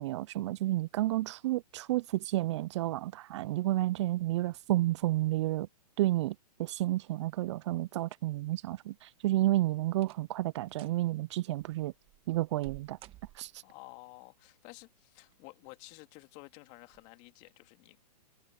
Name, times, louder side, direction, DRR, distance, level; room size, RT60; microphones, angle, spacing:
voice 1, 0.0-5.7 6.0-6.3 6.6-11.9 12.3-13.0 13.4-13.5, right 16 dB, 45° right, 0.5 m, -31 dB
sound 1, 9.0-9.4 9.9-10.4 10.7-11.0 11.6-13.8 15.0-15.6 16.0-16.1 16.8-17.1 17.4-17.5, right 16 dB, 25° right, 1.6 m, -54 dB
voice 2, 13.6-18.2, left 25 dB, 35° left, 2.4 m, -52 dB
hypercardioid pair, 135°, 21 cm